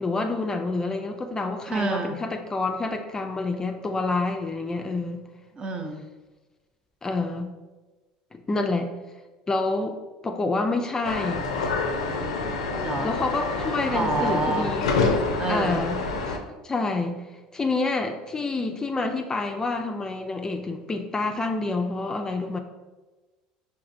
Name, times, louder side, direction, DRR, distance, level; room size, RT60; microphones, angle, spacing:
voice 1, 0.0-5.3 7.0-7.5 8.3-8.9 9.5-10.0 10.2-11.4 13.0-14.8 15.5-16.0 16.3-16.4 16.6-17.2 17.5-22.6, left 3 dB, 20° left, 5 dB, 0.3 m, -28 dB
voice 2, 1.7-2.2 5.6-6.0 12.4-12.5 12.8-13.1 13.9-14.7 15.4-15.8, right 2 dB, 30° right, 4 dB, 0.6 m, -27 dB
sound 1, 11.0-16.4, left 3 dB, 90° left, 0.4 m, -27 dB
4.8 x 2.6 x 2.5 m, 1.2 s
hypercardioid pair, 80°, 3 cm